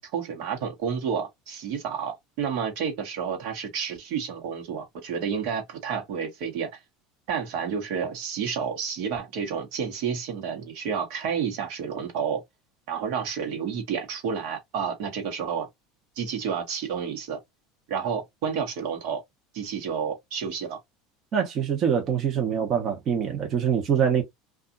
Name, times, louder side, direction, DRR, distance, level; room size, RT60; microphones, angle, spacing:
voice 1, 0.0-6.7 7.3-12.4 12.9-15.7 16.2-17.4 17.9-19.2 19.5-20.8, right 7 dB, 70° right, 1.1 m, -30 dB
voice 2, 21.3-24.2, right 7 dB, 40° right, 0.8 m, -24 dB
2.7 x 2.4 x 2.5 m
supercardioid pair, 110°, 0 cm